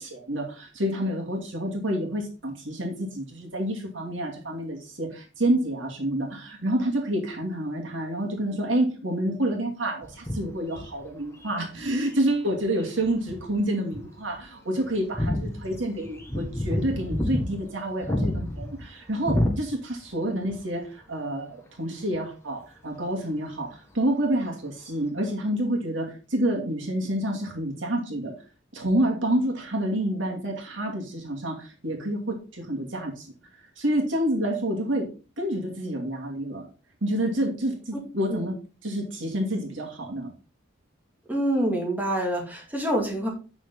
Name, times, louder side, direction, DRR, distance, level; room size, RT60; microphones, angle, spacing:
voice 1, 0.0-28.3 28.7-33.3 33.8-35.1 35.4-36.7 37.0-38.5 38.8-40.3, right 1 dB, 70° right, 1 dB, 2.6 m, -28 dB
sound 1, 10.0-12.2 12.8-13.6 13.9-14.0 14.3-14.4 14.8-20.1 20.4-20.6 22.1-22.2, left 1 dB, 15° left, 1.8 m, -29 dB
voice 2, 41.3-43.3, right 1 dB, 10° right, -1 dB, 2.3 m, -26 dB
8.6 x 6.4 x 3.9 m, 0.33 s
head